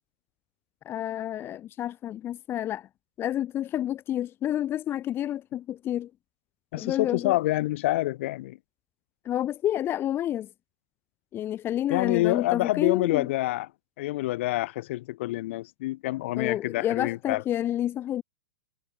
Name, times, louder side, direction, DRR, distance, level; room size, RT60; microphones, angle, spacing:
voice 1, 0.9-2.9 3.2-6.1 6.8-7.4 9.2-10.5 11.3-13.3 16.4-18.2, left 11 dB, 30° left, 3.8 m, -29 dB
voice 2, 6.7-8.6 11.9-13.7 14.0-17.4, left 17 dB, 55° left, 7.4 m, -27 dB
figure-of-eight pair, 105°, 8 cm